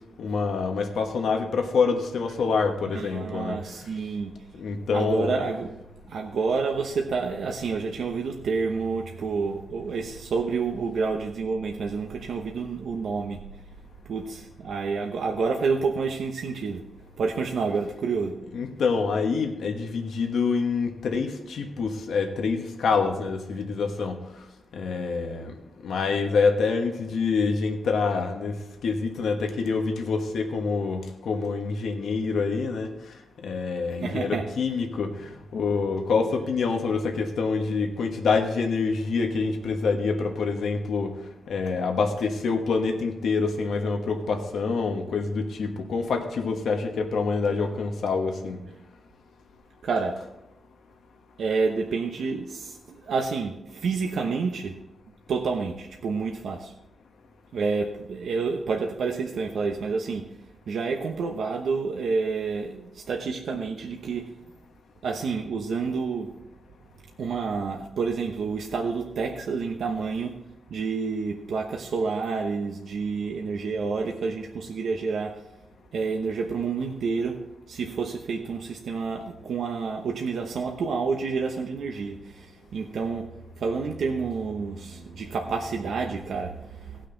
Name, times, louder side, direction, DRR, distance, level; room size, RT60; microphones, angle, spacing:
voice 1, 0.2-3.6 4.6-5.4 18.5-24.2 24.7-25.5 25.8-28.5 28.8-32.9 33.4-41.1 41.5-48.6, left 4 dB, 90° left, 3 dB, 1.3 m, -26 dB
voice 2, 2.9-4.4 4.9-5.8 6.1-13.4 14.1-16.9 17.2-18.4 34.0-34.5 49.8-50.2 51.4-54.8 55.3-56.7 57.5-60.3 60.7-64.3 65.0-66.4 67.2-70.4 70.7-75.4 75.9-87.0, right 4 dB, 80° right, 2 dB, 0.9 m, -29 dB
18.5 x 6.4 x 3.9 m, 0.94 s
wide cardioid pair, 115°, 0 cm